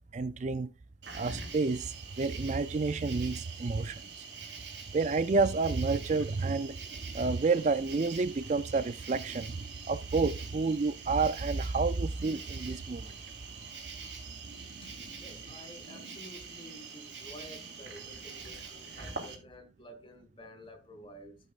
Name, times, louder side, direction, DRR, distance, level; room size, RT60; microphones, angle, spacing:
voice 1, 0.1-0.7 1.1-4.2 4.9-6.8 7.0-13.1, right 4 dB, 35° right, 0.4 m, -30 dB
Cricket, 1.0-19.3, right 5 dB, 60° right, 3.3 m, -45 dB
voice 2, 14.6-21.4, equal, 25° left, 1.7 m, -51 dB
13.5 x 8.5 x 2.4 m
head